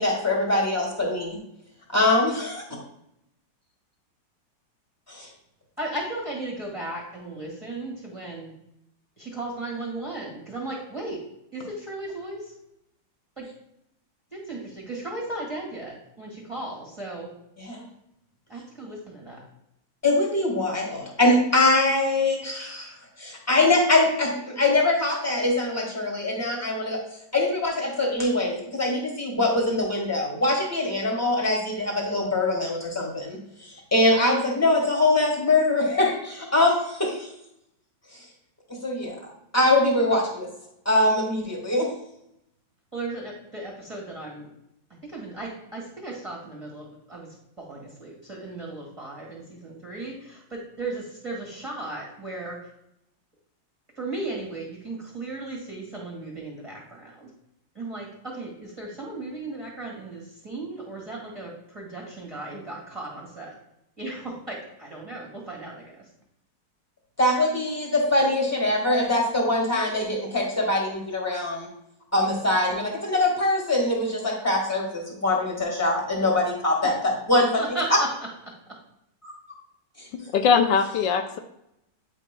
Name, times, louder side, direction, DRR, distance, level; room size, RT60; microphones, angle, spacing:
voice 1, 0.0-1.4 1.9-2.6 5.1-5.3 17.6-17.8 20.0-27.0 27.3-37.3 38.7-39.2 39.5-40.4 40.8-41.9 67.2-71.7 72.1-77.6 79.2-79.3, left 2 dB, 10° left, -1 dB, 1.4 m, -23 dB
voice 2, 5.8-8.5 9.2-11.2 11.5-12.5 13.4-13.5 14.3-17.3 18.5-19.5 40.1-40.2 42.9-44.5 45.0-47.3 47.6-52.7 54.0-57.3 57.7-63.6 64.0-66.1 76.8-76.9 77.6-78.1 78.5-78.8, right 2 dB, 20° right, -3 dB, 1.5 m, -36 dB
voice 3, 80.2-81.4, left 6 dB, 80° left, 6 dB, 1.3 m, -21 dB
8.9 x 5.1 x 2.2 m, 0.80 s
omnidirectional pair, 2.0 m